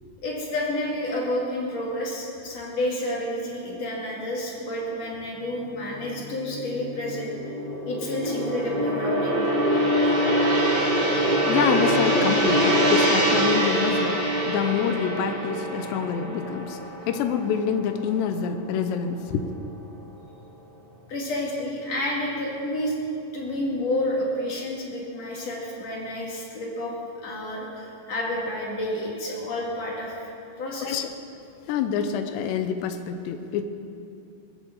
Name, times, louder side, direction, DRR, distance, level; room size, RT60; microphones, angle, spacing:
voice 1, 0.2-7.3 7.9-9.4 21.1-23.0 23.3-26.9 27.2-30.2 30.6-31.0, left 1 dB, 45° left, -3 dB, 3.0 m, -30 dB
Gong, 5.8-18.3 18.6-18.9, right 1 dB, 15° right, 2.2 m, -24 dB
voice 2, 11.4-16.8 17.1-19.5 30.8-31.1 31.7-33.6, left 7 dB, 80° left, 8 dB, 2.9 m, -26 dB
20.5 x 7.4 x 7.9 m, 2.6 s
omnidirectional pair, 5.1 m